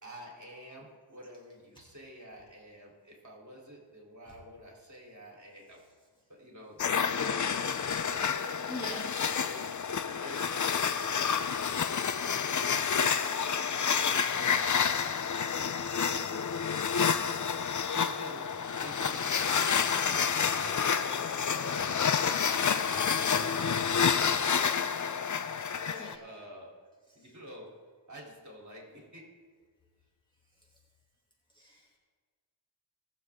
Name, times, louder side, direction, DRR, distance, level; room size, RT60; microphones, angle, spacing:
voice 1, 0.0-5.8 6.3-7.5 7.9-8.8 9.2-9.7 10.1-11.1 11.5-15.9 17.9-19.8 20.5-22.0 22.8-24.5 25.7-26.7 27.2-27.7 28.1-29.2, equal, 35° right, -3 dB, 3.5 m, -48 dB
sound 1, 6.8-26.2, left 6 dB, 40° left, 0.6 m, -29 dB
voice 2, 8.7-9.2 17.6-17.8 25.1-25.2 25.9-26.2 27.1-27.2 31.5-31.9, equal, 10° left, -4 dB, 2.5 m, -44 dB
19.5 x 7.3 x 3.7 m, 1.5 s
cardioid pair, 50°, 48 cm